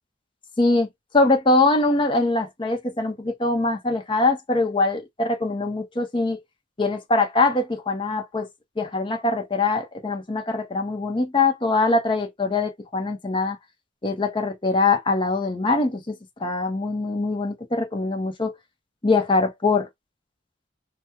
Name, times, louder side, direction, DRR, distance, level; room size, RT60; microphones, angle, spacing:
voice 1, 0.6-0.9 1.1-6.4 6.8-8.5 8.8-13.6 14.0-18.6 19.0-19.9, left 3 dB, 25° left, 0.7 m, -23 dB
3.4 x 2.1 x 2.8 m
head